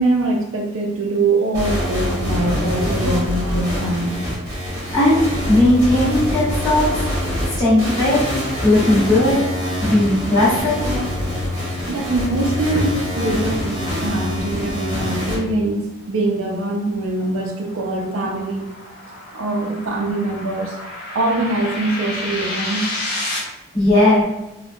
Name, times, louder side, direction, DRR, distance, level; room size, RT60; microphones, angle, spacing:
voice 1, 0.0-4.2 11.9-18.7 19.3-20.8 21.1-22.9, right 2 dB, 70° right, 0 dB, 0.4 m, -23 dB
sound 1, 1.5-15.4, left 1 dB, 15° right, 1.1 m, -24 dB
voice 2, 5.5-7.0 7.5-8.2 8.6-9.4 9.8-10.9 23.3-23.5 23.7-24.2, left 1 dB, 15° left, -11 dB, 1.4 m, -17 dB
sound 2, 16.5-23.4, left 2 dB, 45° left, 1.0 m, -31 dB
4.3 x 2.2 x 2.2 m, 0.95 s
head